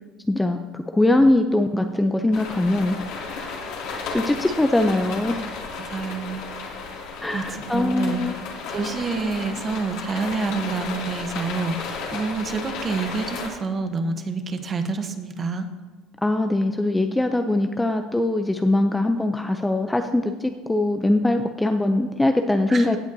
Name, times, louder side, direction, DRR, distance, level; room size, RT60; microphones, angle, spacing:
voice 1, 0.3-3.1 3.9-5.4 7.2-8.3 16.2-23.0, left 2 dB, 5° left, 6 dB, 0.4 m, -22 dB
sound 1, 2.3-13.5, left 4 dB, 65° left, 2.4 m, -33 dB
voice 2, 5.9-6.5 7.3-8.2 8.7-15.7 22.7-23.0, right 4 dB, 25° right, 8 dB, 0.9 m, -28 dB
16.5 x 8.1 x 2.7 m, 1.3 s
cardioid pair, 145°, 0 cm